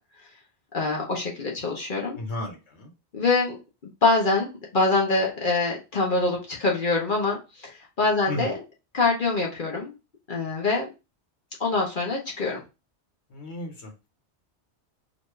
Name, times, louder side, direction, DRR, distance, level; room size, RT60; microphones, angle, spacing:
voice 1, 0.7-2.2 3.1-3.6 4.0-8.6 8.9-9.9 10.3-10.9 11.6-12.6, left 3 dB, 50° left, -1 dB, 1.0 m, -24 dB
voice 2, 2.1-2.9 8.3-8.5 13.3-13.9, left 1 dB, 75° left, 3 dB, 1.4 m, -34 dB
4.0 x 2.5 x 3.2 m, 0.28 s
omnidirectional pair, 1.2 m